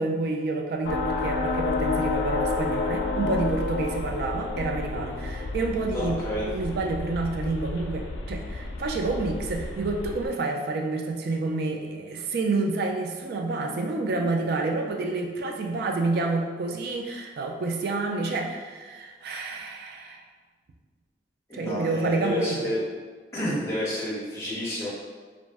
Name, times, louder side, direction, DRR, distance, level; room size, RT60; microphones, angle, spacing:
voice 1, 0.0-20.2 21.5-22.7, right 3 dB, 60° right, 3 dB, 0.3 m, -29 dB
sound 1, 0.8-10.3, left 3 dB, 85° left, 0.3 m, -30 dB
voice 2, 5.9-6.4 21.5-22.8 23.3-24.9, left 1 dB, 15° left, -8 dB, 0.8 m, -29 dB
2.5 x 2.0 x 3.3 m, 1.5 s
head